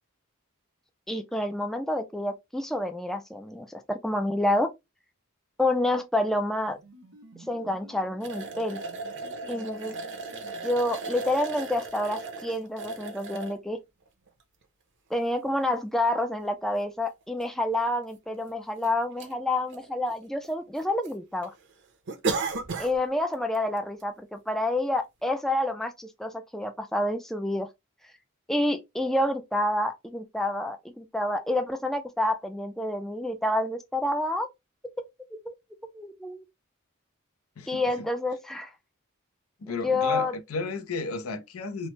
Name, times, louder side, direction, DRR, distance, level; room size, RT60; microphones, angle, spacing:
voice 1, 1.1-4.7 5.6-6.8 7.5-8.8 9.5-10.0 10.6-13.8 15.1-21.5 22.8-27.7 28.5-34.5 35.3-35.5 35.8-36.4 37.7-38.7 39.7-40.3, left 1 dB, ahead, 0.3 m, -28 dB
sound 1, 6.5-11.5, right 2 dB, 75° right, 1.1 m, -53 dB
sound 2, 8.2-13.6 14.3-14.4 16.0-16.1 16.4-16.5 17.4-17.5 17.7-17.8 18.5-18.9 19.2-19.3 19.7-20.5 20.8-21.1 21.4-21.5 22.1-23.0 23.3-23.6 24.0-24.1, right 3 dB, 60° right, 0.6 m, -35 dB
voice 2, 39.6-41.9, left 3 dB, 80° left, 0.6 m, -33 dB
3.2 x 2.0 x 2.9 m
head